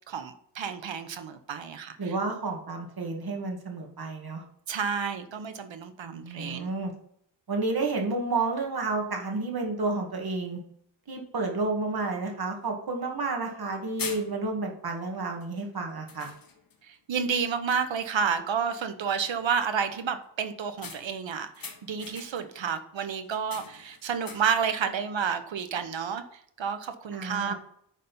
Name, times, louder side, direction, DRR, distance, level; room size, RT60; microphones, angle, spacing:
voice 1, 0.1-2.1 4.7-6.7 16.8-27.5, right 7 dB, 75° right, 9 dB, 1.1 m, -30 dB
voice 2, 2.0-4.4 6.1-6.9 7.5-10.6 11.1-16.3 27.1-27.5, right 3 dB, 55° right, 1 dB, 2.2 m, -31 dB
sound 1, 12.6-12.7 13.5-13.7 14.0-14.7 15.4-15.6 16.1-16.9 17.3-17.4 17.7-18.1 20.8-22.6 23.2-24.7, left 5 dB, 50° left, 1.5 m, -43 dB
10.0 x 4.2 x 5.5 m, 0.67 s
wide cardioid pair, 100°, 45 cm